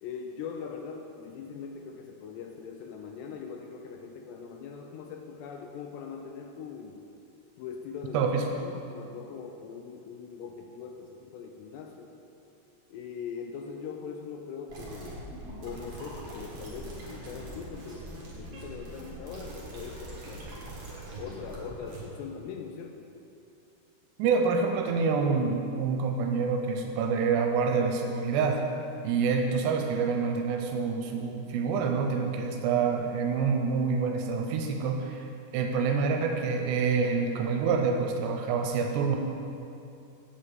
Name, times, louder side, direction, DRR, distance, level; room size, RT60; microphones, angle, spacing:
voice 1, 0.0-7.0 7.6-8.3 8.6-12.1 12.9-15.3 15.6-20.4 21.2-23.1 32.5-32.7, left 6 dB, 85° left, 3 dB, 2.7 m, -41 dB
voice 2, 8.1-8.4 24.2-28.6 29.0-35.3 35.5-39.2, right 5 dB, 85° right, 3 dB, 2.7 m, -27 dB
sound 1, 14.7-22.0, right 1 dB, 55° right, 1.7 m, -42 dB
8.3 x 5.3 x 7.3 m, 2.7 s
omnidirectional pair, 5.0 m